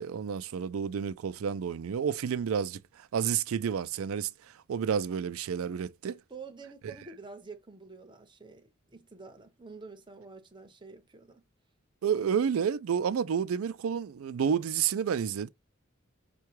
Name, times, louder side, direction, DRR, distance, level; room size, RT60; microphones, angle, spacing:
voice 1, 0.0-4.3 4.7-6.2 12.0-15.5, right 7 dB, 85° right, 0.4 m, -30 dB
voice 2, 6.3-11.4, right 4 dB, 25° right, 0.7 m, -48 dB
5.4 x 2.3 x 3.0 m
head